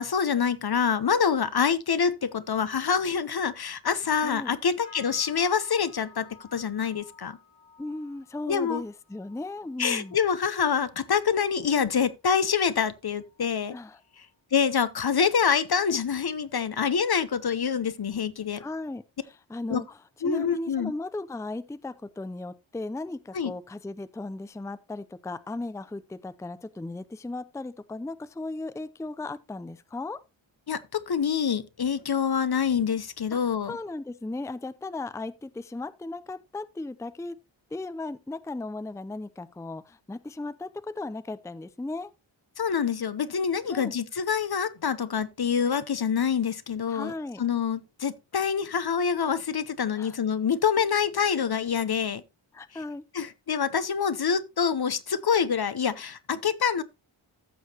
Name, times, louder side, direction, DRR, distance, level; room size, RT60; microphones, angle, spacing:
voice 1, 0.0-7.4 8.5-8.8 9.8-13.8 14.5-18.6 19.7-19.8 20.2-20.9 23.3-23.5 30.7-33.7 42.6-47.1 47.4-52.2 53.1-56.8, left 7 dB, 50° left, 0.8 m, -26 dB
voice 2, 4.2-4.6 7.8-10.2 13.7-14.0 18.6-30.2 33.7-37.4 37.7-42.1 43.7-44.0 46.9-47.4 49.9-50.2 52.5-53.0, left 2 dB, 5° left, 0.5 m, -36 dB
sound 1, 4.8-14.4 14.7-15.1 15.5-15.8 16.4-16.5, left 6 dB, 80° left, 4.6 m, -56 dB
14.5 x 6.3 x 2.9 m
cardioid pair, 55°, 47 cm